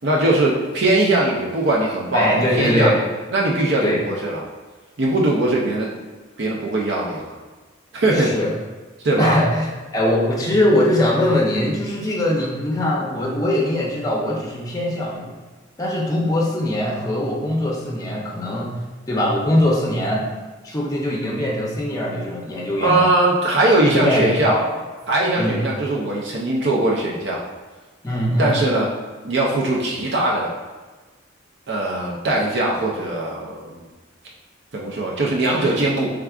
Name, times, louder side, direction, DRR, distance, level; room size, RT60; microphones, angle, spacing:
voice 1, 0.0-3.0 3.3-4.4 5.0-6.0 6.4-7.4 7.9-8.3 9.0-9.4 22.8-24.6 25.1-27.4 28.4-28.9 29.2-30.5 31.7-33.9 34.7-36.1, right 2 dB, 60° right, -4 dB, 0.6 m, -20 dB
voice 2, 2.1-3.0 3.8-4.0 8.1-8.5 9.2-9.7 9.9-15.4 15.8-18.8 19.1-20.3 20.6-23.1 23.9-24.6 25.4-25.6 28.0-28.5, left 1 dB, 20° left, -2 dB, 0.6 m, -21 dB
4.6 x 3.5 x 2.4 m, 1.3 s
head